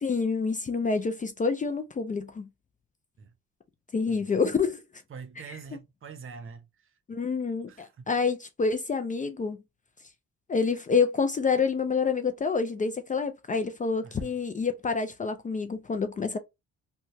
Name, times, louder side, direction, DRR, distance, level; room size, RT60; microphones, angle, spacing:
voice 1, 0.0-2.5 3.9-4.8 5.5-5.6 7.1-9.6 10.5-16.4, left 5 dB, 25° left, 0.4 m, -27 dB
voice 2, 5.1-6.6 7.7-8.1 14.0-14.4, right 5 dB, 45° right, 0.7 m, -44 dB
2.7 x 2.2 x 2.7 m
cardioid pair, 90°, 30 cm